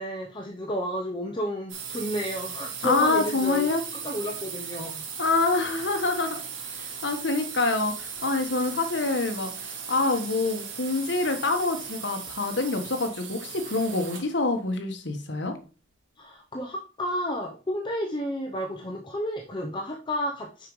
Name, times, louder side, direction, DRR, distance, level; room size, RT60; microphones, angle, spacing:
voice 1, 0.0-5.0 16.2-20.7, equal, 25° left, 1 dB, 0.7 m, -31 dB
sound 1, 1.7-14.4, right 6 dB, 90° right, 1.3 m, -38 dB
voice 2, 2.8-3.8 5.2-6.4 6.7-15.6, left 3 dB, 65° left, 6 dB, 1.2 m, -26 dB
6.7 x 5.1 x 3.1 m, 0.35 s
head